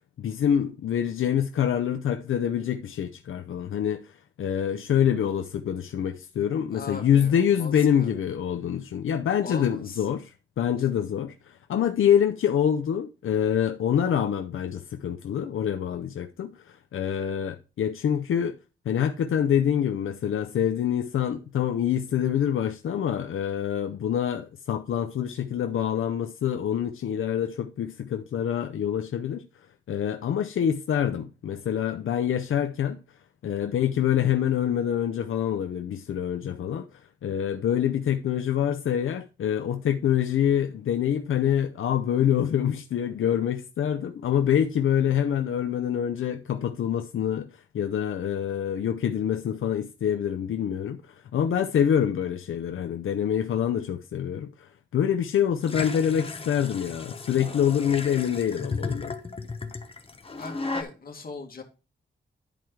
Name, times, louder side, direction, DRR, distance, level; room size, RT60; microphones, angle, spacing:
voice 1, 0.2-4.1 4.4-18.6 18.9-29.4 29.9-33.0 33.4-59.2, left 9 dB, 85° left, 0.6 m, -26 dB
voice 2, 6.7-7.7 8.0-8.1 9.4-10.0 10.8-10.9 60.4-61.6, left 4 dB, 45° left, 2.1 m, -40 dB
sound 1, 55.6-60.8, left 3 dB, 30° left, 1.0 m, -35 dB
10.5 x 4.7 x 4.6 m
wide cardioid pair, 135°, 20 cm